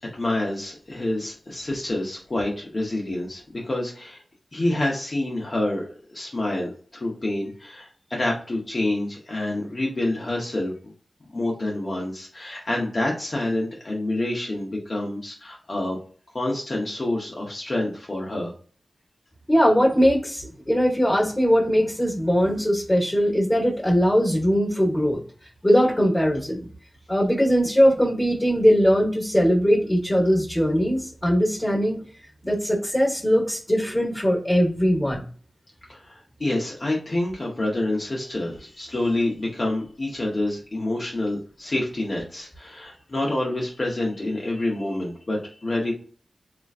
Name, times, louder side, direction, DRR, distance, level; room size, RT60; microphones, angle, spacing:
voice 1, 0.0-4.2 4.5-10.7 11.3-16.0 16.3-18.5 35.9-45.9, left 1 dB, 50° left, -3 dB, 0.8 m, -27 dB
voice 2, 19.5-25.2 25.6-26.7 27.1-32.0 32.4-35.2, equal, 15° left, -5 dB, 1.2 m, -20 dB
3.0 x 2.4 x 2.4 m, 0.43 s
cardioid pair, 45°, 0 cm